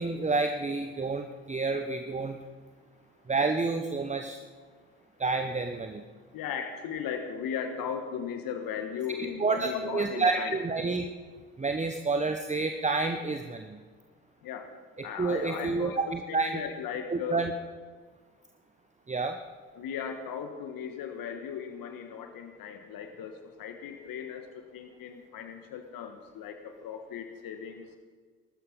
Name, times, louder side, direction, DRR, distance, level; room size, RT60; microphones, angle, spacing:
voice 1, 0.0-2.4 3.3-4.4 5.2-6.0 9.2-11.1 11.6-13.8 15.2-16.6 17.1-17.5 19.1-19.4, right 3 dB, 15° right, 6 dB, 1.1 m, -29 dB
voice 2, 6.3-10.6 14.4-14.7 15.0-16.0 16.3-17.4 19.7-28.0, left 7 dB, 55° left, 7 dB, 1.6 m, -37 dB
19.5 x 13.0 x 5.4 m, 1.5 s
figure-of-eight pair, 50°, 41 cm